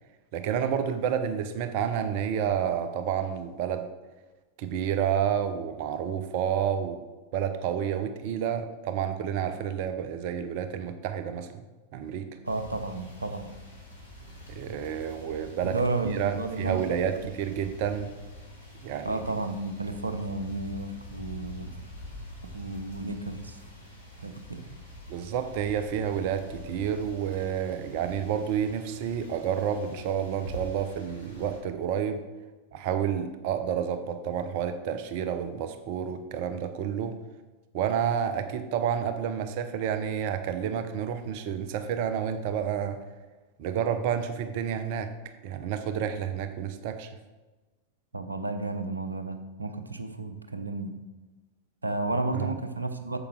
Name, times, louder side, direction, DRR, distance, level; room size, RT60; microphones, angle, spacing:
voice 1, 0.3-3.9 4.6-7.0 7.3-11.6 11.9-12.3 14.5-15.8 16.1-18.1 18.8-19.3 25.1-32.2 32.7-37.2 37.7-43.0 43.6-45.1 45.4-47.1 52.3-52.5, right 8 dB, 45° right, 10 dB, 0.7 m, -30 dB
sound 1, 12.4-31.6, equal, 75° left, 2.6 m, -45 dB
voice 2, 12.4-13.6 15.6-16.9 19.0-21.7 22.5-23.6 24.2-24.7 48.1-51.0 51.8-53.2, right 2 dB, 80° right, 8 dB, 0.8 m, -32 dB
8.6 x 7.2 x 4.8 m, 1.2 s
figure-of-eight pair, 90°, 0 cm